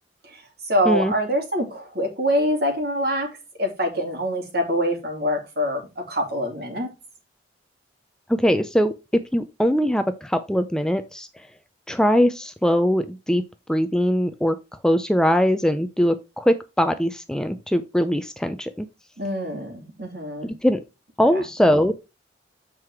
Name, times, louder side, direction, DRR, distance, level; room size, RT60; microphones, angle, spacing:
voice 1, 0.7-3.3 3.6-6.9 19.2-20.5 21.3-21.4, equal, 55° right, 2.7 m, -25 dB
voice 2, 8.3-8.9 9.3-11.3 11.9-13.4 13.7-14.6 14.8-18.9 20.6-20.8 21.2-21.9, equal, 5° left, 0.4 m, -21 dB
7.6 x 4.7 x 4.6 m
head